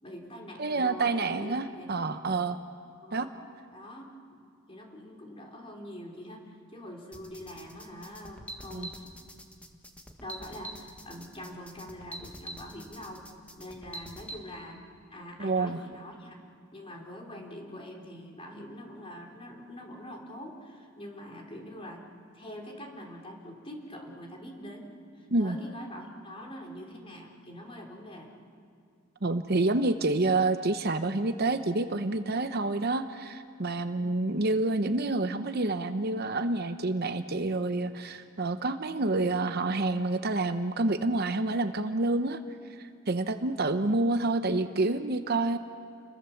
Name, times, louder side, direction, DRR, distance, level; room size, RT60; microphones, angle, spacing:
voice 1, 0.0-2.0 2.5-2.6 3.0-3.3 3.7-4.4 4.7-9.1 10.2-13.3 13.6-14.8 15.1-16.4 16.7-22.1 22.3-28.4 43.2-43.6, equal, 25° left, 1 dB, 3.8 m, -44 dB
voice 2, 0.6-2.6 3.1-3.3 8.7-8.9 15.4-15.8 25.3-25.6 29.2-42.4 42.8-45.6, right 2 dB, 50° right, 9 dB, 0.9 m, -28 dB
sound 1, 7.1-14.4, right 1 dB, 5° left, 1.6 m, -45 dB
30.0 x 22.5 x 7.2 m, 2.3 s
head